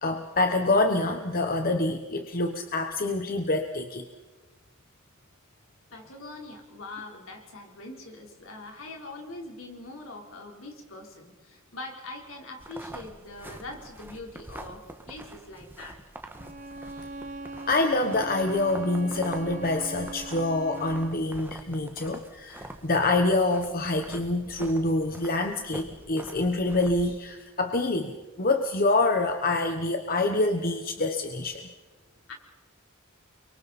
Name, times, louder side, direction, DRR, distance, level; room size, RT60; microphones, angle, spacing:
voice 1, 0.0-4.0 17.7-31.6, left 2 dB, 45° left, 6 dB, 1.1 m, -26 dB
voice 2, 5.9-16.0 32.3-32.4, left 2 dB, 70° left, 1 dB, 4.0 m, -42 dB
sound 1, 12.6-27.1, right 1 dB, 10° right, 1.5 m, -45 dB
Bowed string instrument, 16.3-21.2, right 2 dB, 40° right, 0.9 m, -40 dB
30.0 x 23.0 x 4.3 m, 1.2 s
head